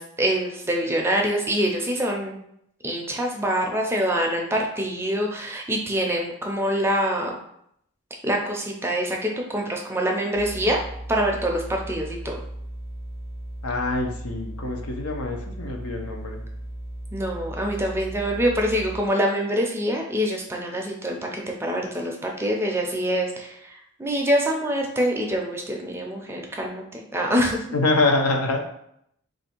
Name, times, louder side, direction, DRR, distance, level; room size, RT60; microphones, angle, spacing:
voice 1, 0.0-2.4 2.8-7.3 8.2-10.8 11.1-12.4 17.1-27.6, equal, 10° right, 0 dB, 0.4 m, -25 dB
sound 1, 10.3-19.0, right 1 dB, 45° left, 0.8 m, -36 dB
voice 2, 13.6-16.4 27.7-28.6, left 2 dB, 90° left, 2 dB, 0.7 m, -25 dB
3.1 x 2.6 x 4.3 m, 0.74 s
head